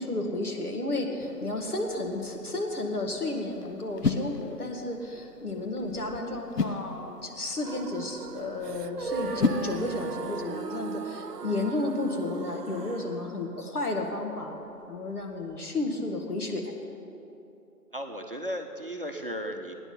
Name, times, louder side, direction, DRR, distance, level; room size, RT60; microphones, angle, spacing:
voice 1, 0.0-14.6 14.9-16.7, left 2 dB, 70° left, 1 dB, 2.1 m, -32 dB
sound 1, 1.2-10.5, left 3 dB, 85° left, 0.9 m, -35 dB
sound 2, 7.6-13.0, right 2 dB, 15° right, 1.8 m, -41 dB
sound 3, 7.6-15.6, right 7 dB, 80° right, 0.6 m, -41 dB
voice 2, 17.9-19.7, equal, 35° right, 3 dB, 0.8 m, -35 dB
15.0 x 10.0 x 5.7 m, 2.9 s
figure-of-eight pair, 160°, 47 cm